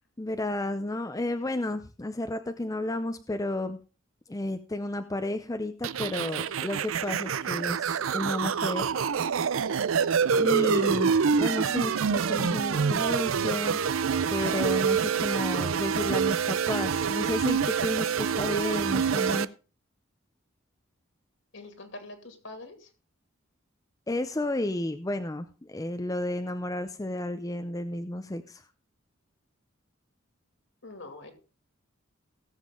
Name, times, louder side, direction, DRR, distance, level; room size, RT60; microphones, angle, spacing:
voice 1, 0.2-3.8 4.3-8.9 10.3-13.8 14.3-19.5 24.1-28.6, left 1 dB, 15° left, 8 dB, 0.6 m, -32 dB
sound 1, 5.8-19.4, right 6 dB, 80° right, 0.5 m, -26 dB
voice 2, 21.5-22.9 30.8-31.3, left 2 dB, 65° left, 7 dB, 2.5 m, -44 dB
17.5 x 7.3 x 3.8 m, 0.35 s
head